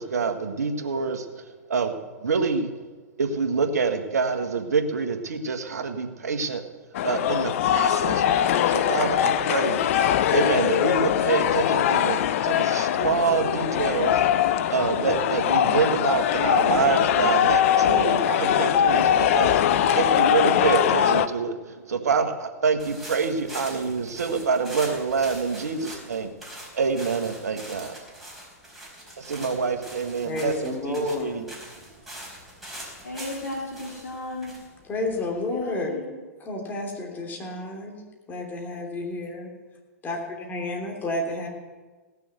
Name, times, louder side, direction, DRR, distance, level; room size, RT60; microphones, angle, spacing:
voice 1, 0.0-2.0 2.2-2.7 3.2-6.6 7.0-10.0 10.3-26.3 26.7-28.0 29.2-31.4, right 5 dB, 75° right, 6 dB, 1.6 m, -26 dB
sound 1, 6.9-21.3, left 10 dB, 55° left, 0.7 m, -22 dB
sound 2, 22.8-35.6, right 1 dB, ahead, 4.6 m, -43 dB
voice 2, 30.2-31.4 34.8-35.9 36.4-38.0 38.3-39.5 40.0-41.5, left 2 dB, 20° left, 0 dB, 3.3 m, -30 dB
voice 3, 33.0-34.5 35.5-36.1, left 2 dB, 80° left, -3 dB, 2.9 m, -35 dB
17.5 x 6.8 x 8.1 m, 1.3 s
hypercardioid pair, 110°, 9 cm